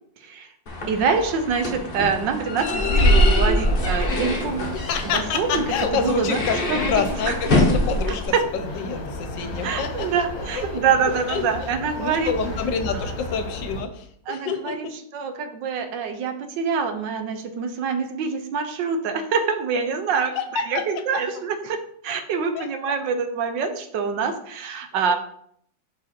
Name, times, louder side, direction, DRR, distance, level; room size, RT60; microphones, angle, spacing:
sound 1, 0.7-8.3, left 1 dB, 35° left, 1.0 m, -23 dB
voice 1, 0.9-4.7 5.0-6.4 6.7-6.9 7.3-7.4 8.1-8.4 9.6-12.3 13.0-13.1 14.3-25.3, right 5 dB, 70° right, 7 dB, 1.4 m, -25 dB
sound 2, 3.6-13.8, left 2 dB, 55° left, 1.5 m, -34 dB
voice 2, 4.7-10.6 11.3-11.5 12.0-14.9 20.4-20.8 22.5-22.7, left 6 dB, 75° left, 8 dB, 1.4 m, -28 dB
5.9 x 4.9 x 4.3 m, 0.65 s
omnidirectional pair, 2.1 m